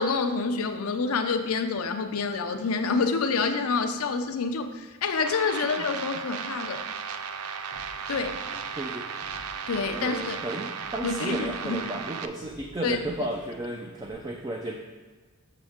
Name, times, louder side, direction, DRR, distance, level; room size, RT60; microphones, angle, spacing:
voice 1, 0.0-6.8 8.1-8.4 9.7-10.4 11.0-11.8 12.8-13.0, left 4 dB, 85° left, 6 dB, 0.6 m, -27 dB
sound 1, 5.3-12.3, right 6 dB, 90° right, 0.4 m, -35 dB
sound 2, 7.7-14.1, equal, 65° right, 1.6 m, -51 dB
voice 2, 8.7-9.1 9.9-14.8, right 1 dB, 20° right, 1 dB, 0.3 m, -34 dB
6.7 x 6.1 x 3.6 m, 1.3 s
head